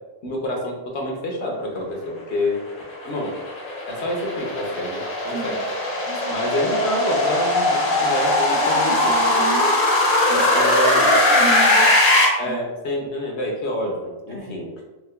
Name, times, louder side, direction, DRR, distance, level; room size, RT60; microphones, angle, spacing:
voice 1, 0.2-2.6 3.0-3.3 3.9-5.6 6.3-9.1 10.3-11.1 12.4-14.7, left 1 dB, 75° left, 0 dB, 1.1 m, -27 dB
sound 1, 2.7-12.2, left 2 dB, 55° left, 0.8 m, -20 dB
voice 2, 8.5-9.8 10.3-12.0 12.5-12.6 14.3-14.6, right 2 dB, 60° right, -1 dB, 0.8 m, -31 dB
3.6 x 2.9 x 2.2 m, 1.1 s
omnidirectional pair, 1.1 m